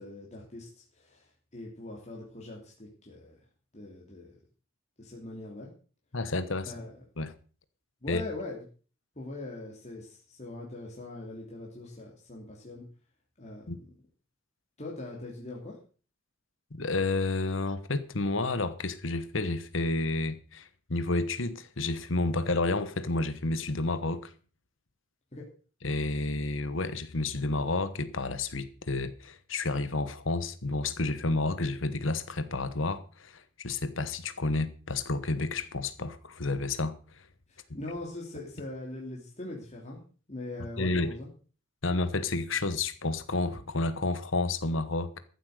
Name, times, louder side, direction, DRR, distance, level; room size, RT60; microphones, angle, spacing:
voice 1, 0.0-3.3 3.7-4.3 5.0-5.7 6.6-6.9 8.0-8.6 9.2-12.8 13.4-13.7 14.8-15.8 25.3-25.5 37.5-40.0 40.3-41.3, left 2 dB, 35° left, 3.0 m, -41 dB
voice 2, 6.1-6.7 7.2-7.3 8.1-8.2 13.7-13.8 16.7-24.3 25.8-36.9 40.8-41.1 41.8-45.2, left 2 dB, 70° left, 1.2 m, -30 dB
14.5 x 8.0 x 6.6 m
head